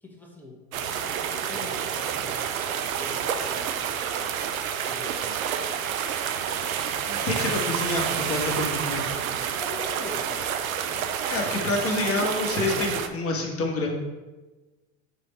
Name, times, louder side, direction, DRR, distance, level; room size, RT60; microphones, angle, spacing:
voice 1, 0.0-4.3 4.7-5.4 9.6-11.2, left 2 dB, 5° left, -1 dB, 1.3 m, -43 dB
sound 1, 0.7-13.1, right 8 dB, 85° right, 0.6 m, -29 dB
voice 2, 7.1-9.0 11.3-13.9, left 2 dB, 35° left, 1 dB, 1.4 m, -27 dB
6.6 x 3.4 x 4.2 m, 1.2 s
hypercardioid pair, 95°, 41 cm